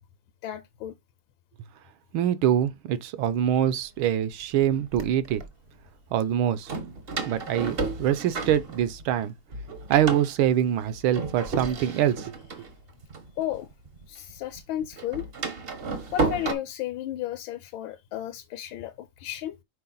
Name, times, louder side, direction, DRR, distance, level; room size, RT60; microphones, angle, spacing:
voice 1, 0.4-0.9 3.5-3.6 13.4-13.7 14.1-15.3 16.1-19.6, left 12 dB, 75° left, 1.4 m, -33 dB
voice 2, 2.1-5.4 6.1-6.7 7.3-9.3 9.9-12.3, right 10 dB, 75° right, 1.4 m, -24 dB
Door, 3.5-3.6 4.4-5.5 6.7-9.2 9.5-14.0 14.3-16.5, right 3 dB, 50° right, 0.7 m, -33 dB
5.7 x 4.5 x 3.9 m
omnidirectional pair, 2.4 m